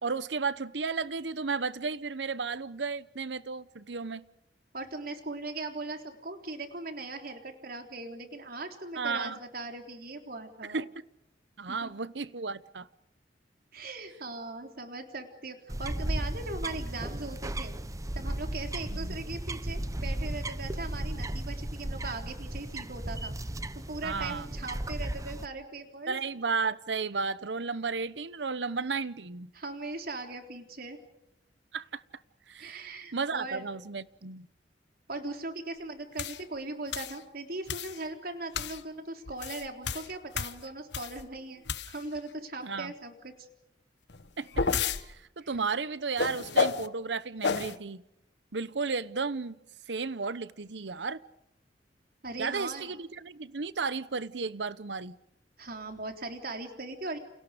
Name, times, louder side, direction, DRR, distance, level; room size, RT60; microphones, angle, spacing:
voice 1, 0.0-4.2 9.0-9.4 10.7-10.9 11.6-12.9 18.9-19.2 24.0-24.5 26.1-29.5 31.7-32.0 32.5-34.5 42.6-42.9 44.4-48.0 48.5-49.6 49.9-51.2 52.4-55.2, right 4 dB, 85° right, 1.0 m, -33 dB
voice 2, 4.7-10.8 11.7-11.9 13.7-17.8 18.2-23.4 23.8-26.1 29.5-31.0 32.6-33.6 35.1-41.6 41.9-43.5 45.4-45.5 52.2-52.9 55.6-57.2, right 2 dB, 60° right, 3.7 m, -39 dB
sound 1, 15.7-25.5, right 1 dB, 20° right, 0.9 m, -35 dB
sound 2, 36.2-36.4 36.9-37.2 37.7-38.0 38.5-38.8 39.3-41.2 41.7-42.2 44.1-45.0 46.2-46.9 47.4-47.8, left 5 dB, 75° left, 1.2 m, -31 dB
30.0 x 29.0 x 5.1 m
head